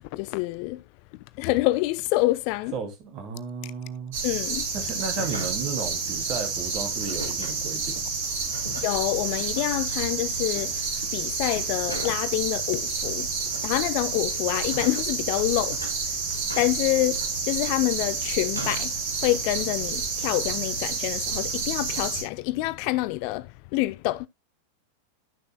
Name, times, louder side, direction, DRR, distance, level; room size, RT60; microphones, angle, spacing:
voice 1, 0.1-0.8 1.4-2.7 4.2-4.6 8.8-10.7 11.1-13.3 13.6-15.8 16.6-17.2 17.4-18.9 19.2-23.5 23.7-24.3, left 18 dB, 45° left, 0.4 m, -26 dB
voice 2, 2.7-4.2 4.7-8.1 8.6-8.7, right 5 dB, 35° right, 2.6 m, -34 dB
sound 1, 4.1-22.2, right 4 dB, 55° right, 3.0 m, -29 dB
sound 2, 5.0-5.7 7.0-7.6 8.3-9.1 9.6-9.9 10.3-10.7 11.8-12.3 13.1-13.7 14.4-15.0 15.7-16.0 16.5-18.0 18.4-19.0 19.5-19.9, equal, 85° right, 2.0 m, -40 dB
11.5 x 6.6 x 2.2 m
figure-of-eight pair, 90°, 0 cm